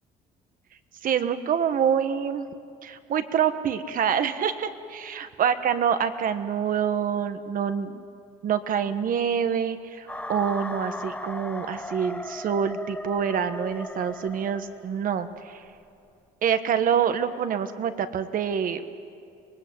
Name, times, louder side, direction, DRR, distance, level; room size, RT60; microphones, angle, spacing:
voice 1, 1.0-2.5 2.8-8.0 8.4-15.6 16.4-18.8, right 8 dB, 55° right, 10 dB, 1.4 m, -26 dB
sound 1, 10.1-15.1, left 1 dB, 10° left, 1.0 m, -37 dB
25.0 x 20.0 x 8.8 m, 2.5 s
cardioid pair, 110°, 17 cm